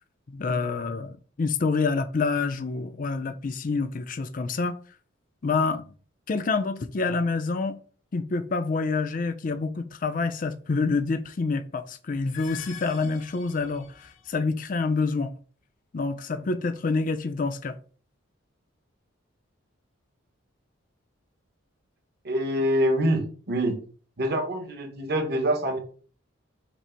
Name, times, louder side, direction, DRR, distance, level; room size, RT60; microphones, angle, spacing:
voice 1, 0.3-4.7 5.4-5.9 6.3-7.8 8.1-15.3 15.9-17.8, left 4 dB, 40° left, 0.4 m, -27 dB
sound 1, 12.1-14.4, left 8 dB, 75° left, 0.9 m, -45 dB
voice 2, 22.2-23.8 24.2-25.8, equal, 50° right, 0.9 m, -25 dB
5.9 x 2.0 x 4.3 m
head